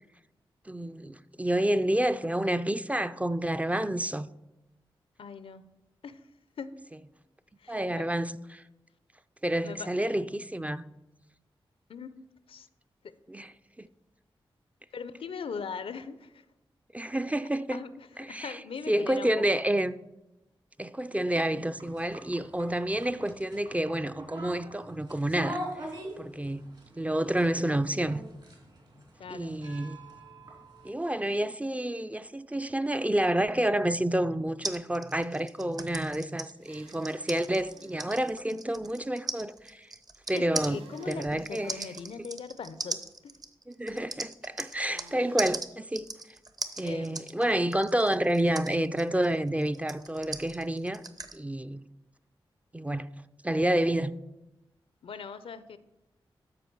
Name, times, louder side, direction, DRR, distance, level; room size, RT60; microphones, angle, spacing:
voice 1, 0.7-4.3 7.7-8.6 9.4-10.9 13.3-13.5 13.8-13.9 16.9-17.8 18.2-18.6 18.9-19.9 20.8-25.6 26.2-26.6 27.0-28.2 29.3-30.0 30.8-39.9 40.3-40.8 41.1-41.7 43.7-46.1 46.8-51.0 51.3-51.8 52.7-53.1 53.4-54.1, right 1 dB, 15° right, 0.4 m, -29 dB
voice 2, 5.2-5.6 6.0-6.3 6.6-6.9 7.6-8.1 9.6-9.9 11.9-12.1 12.5-12.7 14.9-16.4 17.7-19.6 29.2-29.6 38.5-38.6 40.3-43.4 46.8-47.1 55.0-55.8, left 5 dB, 70° left, 0.5 m, -40 dB
sound 1, 21.8-30.9, right 1 dB, 55° right, 3.2 m, -43 dB
sound 2, 34.6-45.1 45.4-51.4, right 3 dB, 40° right, 0.9 m, -39 dB
sound 3, 36.6-38.1 40.6-42.1 44.7-45.7, right 3 dB, 80° right, 0.6 m, -54 dB
12.5 x 5.0 x 4.6 m
cardioid pair, 40°, 10 cm